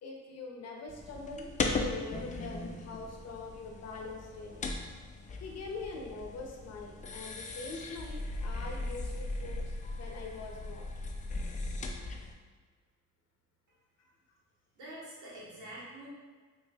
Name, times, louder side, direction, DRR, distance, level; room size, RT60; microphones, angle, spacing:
voice 1, 0.0-4.7 5.2-10.8, left 3 dB, 55° left, 0 dB, 0.7 m, -43 dB
sound 1, 0.9-12.3, left 3 dB, 25° left, 0.4 m, -38 dB
voice 2, 14.7-16.1, right 1 dB, 85° right, -7 dB, 1.4 m, -46 dB
4.8 x 2.6 x 2.3 m, 1.4 s
cardioid pair, 90°, 30 cm